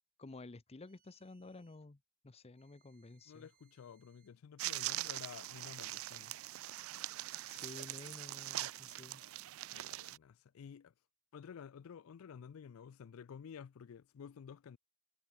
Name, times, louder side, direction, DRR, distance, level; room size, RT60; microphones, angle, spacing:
voice 1, 0.2-2.0 2.2-3.5 7.5-9.2, left 2 dB, 30° left, 0.6 m, -52 dB
sound 1, 0.9-1.9 2.5-4.4, right 9 dB, 45° right, 7.9 m, -75 dB
voice 2, 3.3-6.3 9.7-10.9 11.3-14.8, left 7 dB, 75° left, 0.4 m, -52 dB
sound 2, 4.6-10.2, right 16 dB, 70° right, 0.4 m, -42 dB
head